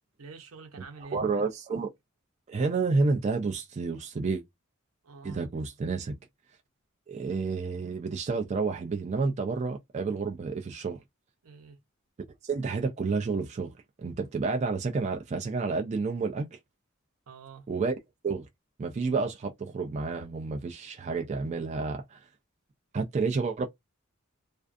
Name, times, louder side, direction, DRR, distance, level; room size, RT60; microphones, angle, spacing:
voice 1, 0.2-1.4 5.0-5.5 11.4-11.8 17.3-17.7, right 4 dB, 80° right, 0.7 m, -47 dB
voice 2, 1.1-1.9 2.5-4.4 5.2-6.2 7.1-11.0 12.4-13.7 14.0-16.5 17.7-17.9 18.2-18.5 18.8-22.2 22.9-23.7, right 4 dB, 30° right, 0.3 m, -30 dB
2.4 x 2.4 x 2.5 m
head